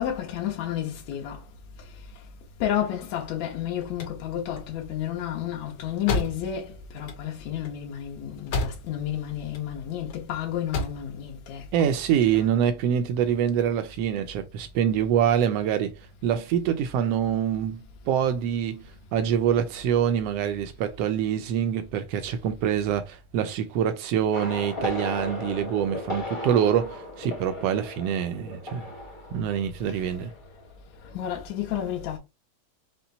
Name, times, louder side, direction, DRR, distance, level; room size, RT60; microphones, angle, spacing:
voice 1, 0.0-1.4 2.6-11.9 31.1-32.2, left 10 dB, 75° left, 2.4 m, -31 dB
sound 1, 3.8-9.1 9.4-10.2 10.5-11.1, left 3 dB, 55° left, 1.7 m, -33 dB
voice 2, 11.7-15.9 16.2-28.8 29.3-30.3, right 9 dB, 80° right, 1.4 m, -25 dB
sound 2, 24.3-30.8 31.0-31.4, left 2 dB, 20° left, 0.7 m, -36 dB
5.6 x 2.2 x 3.9 m
omnidirectional pair, 3.3 m